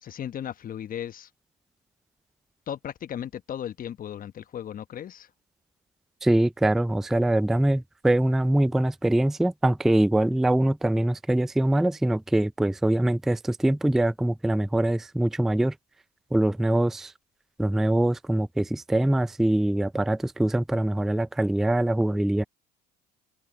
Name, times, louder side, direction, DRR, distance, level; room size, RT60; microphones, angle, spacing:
voice 1, 0.0-1.3 2.7-5.3, left 10 dB, 40° left, 1.1 m, -36 dB
voice 2, 6.2-15.7 16.3-17.1 17.6-22.4, right 1 dB, ahead, 0.3 m, -23 dB
open air
supercardioid pair, 85°, 21 cm